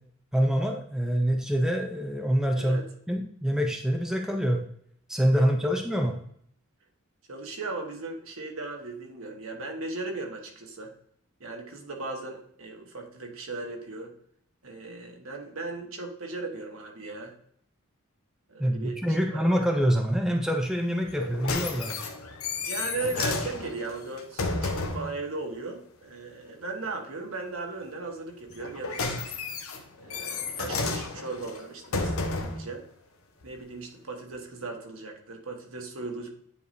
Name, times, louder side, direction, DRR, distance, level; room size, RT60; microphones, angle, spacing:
voice 1, 0.3-2.8 3.1-4.6 5.1-6.2 18.6-22.0, equal, ahead, 3 dB, 0.6 m, -25 dB
voice 2, 7.3-10.9 11.4-14.1 14.6-17.4 18.5-19.7 22.6-29.4 30.0-32.8 33.4-36.3, right 3 dB, 70° right, 2 dB, 1.5 m, -37 dB
sound 1, 21.1-25.1 28.5-32.7 33.4-33.5, left 3 dB, 75° left, 1.0 m, -32 dB
9.4 x 4.8 x 2.7 m, 0.65 s
head